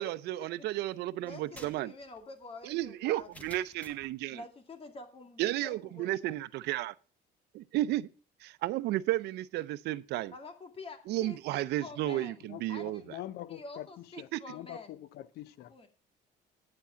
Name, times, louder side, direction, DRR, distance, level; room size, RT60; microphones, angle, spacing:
voice 1, 0.0-1.9 2.6-4.4 5.4-6.9 7.5-8.1 8.4-10.3 11.1-13.0 14.3-14.4, right 15 dB, 80° right, 0.6 m, -33 dB
voice 2, 1.1-3.3 4.3-6.3 10.3-13.1 13.5-15.0 15.7-15.9, left 3 dB, 35° left, 2.3 m, -48 dB
sound 1, 1.3-4.2, left 1 dB, 10° left, 1.4 m, -54 dB
voice 3, 12.0-15.7, left 13 dB, 75° left, 0.7 m, -45 dB
9.4 x 7.5 x 5.7 m
cardioid pair, 110°, 17 cm